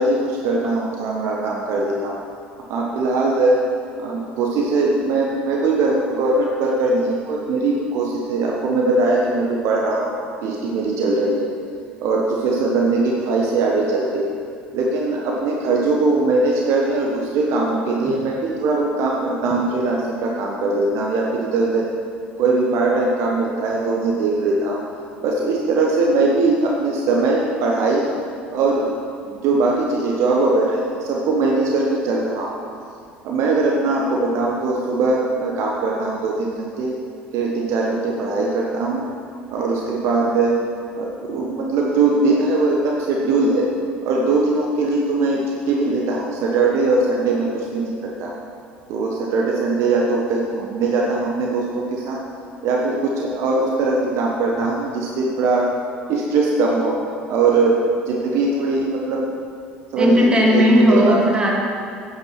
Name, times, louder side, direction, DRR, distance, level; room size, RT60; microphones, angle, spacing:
voice 1, 0.0-2.2 2.7-3.6 4.0-10.1 10.4-11.5 12.0-14.2 14.7-21.9 22.4-24.8 25.2-28.0 28.5-28.9 29.2-32.6 33.2-36.9 37.3-39.0 39.5-40.6 40.9-43.7 44.0-48.3 48.9-52.2 52.6-55.7 56.1-57.0 57.3-57.8 58.1-59.3 59.9-61.1, right 3 dB, 55° right, -2 dB, 1.3 m, -20 dB
voice 2, 60.0-61.5, equal, 15° right, -3 dB, 2.8 m, -15 dB
9.2 x 8.8 x 6.0 m, 2.3 s
figure-of-eight pair, 65°, 6 cm